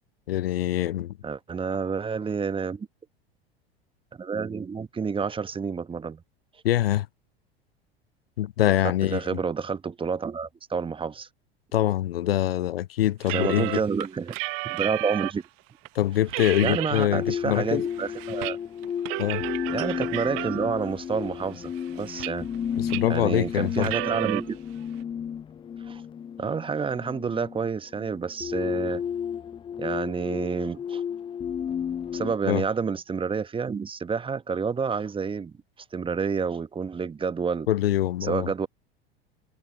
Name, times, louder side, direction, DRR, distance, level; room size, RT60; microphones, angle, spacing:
voice 1, 0.3-1.1 6.6-7.1 8.4-9.2 11.7-13.8 15.9-17.8 19.2-19.4 22.8-23.9 32.4-32.6 37.7-38.5, left 13 dB, 70° left, 0.6 m, -24 dB
voice 2, 1.2-2.9 4.2-6.2 8.8-11.3 13.3-14.4 14.6-15.4 16.6-18.6 19.7-22.5 23.1-24.6 25.8-26.0 26.4-29.0 29.8-31.0 32.1-35.5 35.9-37.7 38.2-38.7, right 5 dB, 15° right, 1.3 m, -29 dB
sound 1, 13.2-15.5 15.9-16.0 16.3-17.1 17.4-18.6 18.8-20.9 21.4-22.6 22.9-23.2 23.7-24.4, right 28 dB, 45° right, 0.9 m, -32 dB
sound 2, 17.1-32.3, left 8 dB, 15° left, 0.5 m, -33 dB
figure-of-eight pair, 80°, 31 cm